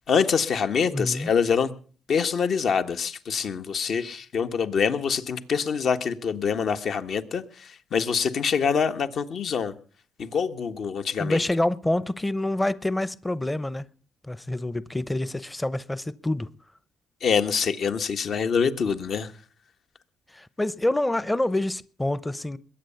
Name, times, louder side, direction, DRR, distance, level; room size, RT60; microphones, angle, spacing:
voice 1, 0.1-1.7 2.1-9.7 10.2-11.4 17.2-19.3, left 6 dB, 60° left, 1.5 m, -25 dB
voice 2, 0.9-1.3 11.2-13.9 14.2-16.5 20.3-22.6, left 1 dB, 10° left, 0.8 m, -27 dB
21.0 x 8.9 x 7.0 m
cardioid pair, 90°, 0 cm